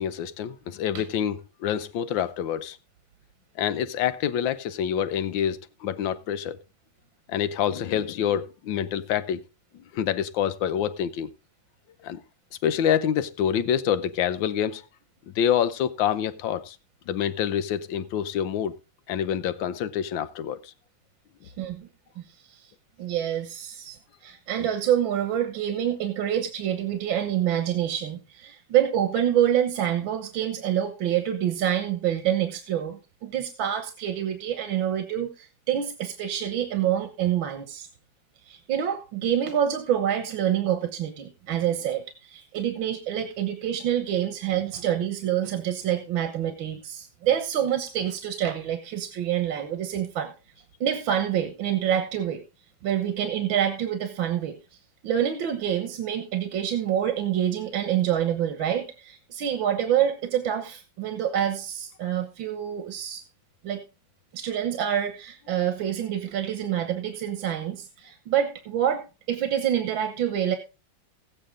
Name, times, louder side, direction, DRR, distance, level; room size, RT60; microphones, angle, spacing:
voice 1, 0.0-2.8 3.6-6.6 7.3-9.4 9.9-11.3 12.0-12.2 12.6-14.8 15.3-16.8 17.1-18.7 19.1-20.7, left 9 dB, 80° left, 1.5 m, -27 dB
voice 2, 21.6-21.9 22.2-22.7 23.0-37.9 38.5-50.3 50.8-52.4 52.8-54.6 55.0-63.2 63.6-63.8 64.3-70.6, right 10 dB, 80° right, 1.9 m, -27 dB
15.5 x 8.5 x 3.7 m
omnidirectional pair, 2.1 m